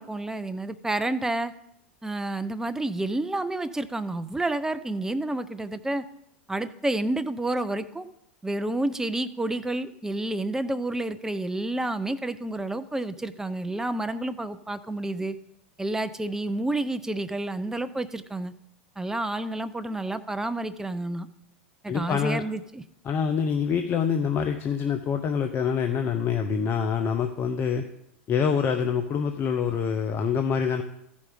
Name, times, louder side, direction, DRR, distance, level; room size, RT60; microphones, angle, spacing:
voice 1, 0.0-1.5 2.0-6.0 6.5-8.1 8.4-15.4 15.8-18.5 19.0-21.3 21.8-22.8, right 2 dB, 10° right, 11 dB, 0.7 m, -29 dB
voice 2, 21.9-22.4 23.0-27.8 28.3-30.8, left 6 dB, 35° left, 6 dB, 0.8 m, -26 dB
14.5 x 5.3 x 5.1 m, 0.78 s
hypercardioid pair, 95°, 7 cm